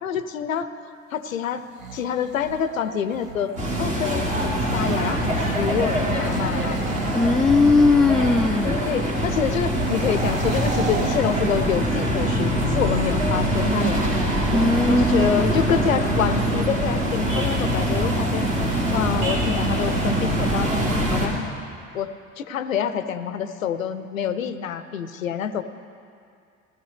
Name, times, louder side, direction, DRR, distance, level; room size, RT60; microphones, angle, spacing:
voice 1, 0.0-1.6 1.9-6.8 8.6-14.2 14.9-20.7 21.1-21.5 21.9-22.1 22.4-25.6, left 7 dB, 80° left, 11 dB, 0.6 m, -27 dB
sound 1, 1.6-5.3 6.1-8.1 9.7-12.0, right 5 dB, 85° right, 0.8 m, -37 dB
sound 2, 3.6-21.3, right 1 dB, 70° right, 2.5 m, -23 dB
voice 2, 7.2-8.8 14.5-15.5, left 3 dB, ahead, 6 dB, 0.3 m, -19 dB
17.0 x 13.0 x 3.3 m, 2.4 s
figure-of-eight pair, 60°, 39 cm